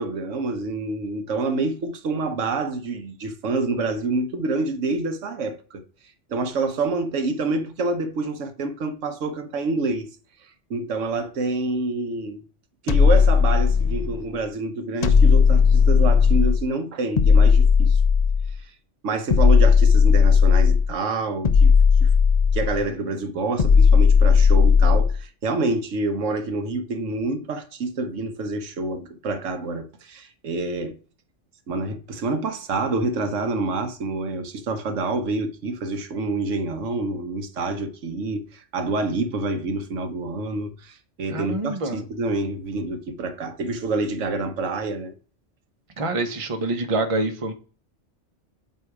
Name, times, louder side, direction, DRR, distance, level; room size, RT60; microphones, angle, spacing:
voice 1, 0.0-5.8 6.3-10.1 10.7-12.4 12.8-18.0 19.0-21.7 22.0-22.1 22.5-31.0 31.7-45.1, right 3 dB, 85° right, 1.2 m, -27 dB
sound 1, 12.9-14.2 15.0-16.7 17.2-18.6 19.3-20.9 21.4-22.8 23.6-25.2, left 6 dB, 45° left, 0.6 m, -16 dB
voice 2, 41.3-42.0 46.0-47.5, right 2 dB, 30° right, 0.8 m, -26 dB
8.1 x 2.8 x 4.7 m
omnidirectional pair, 1.2 m